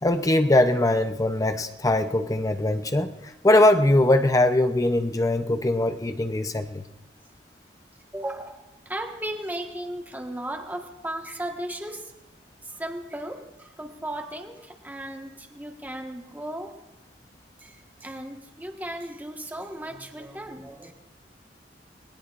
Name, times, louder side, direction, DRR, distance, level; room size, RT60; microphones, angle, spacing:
voice 1, 0.0-6.8, left 1 dB, 20° left, 8 dB, 0.6 m, -21 dB
voice 2, 8.1-12.1 12.6-16.8 17.6-20.9, right 1 dB, 10° right, 3 dB, 1.4 m, -36 dB
29.5 x 19.0 x 2.5 m, 0.96 s
head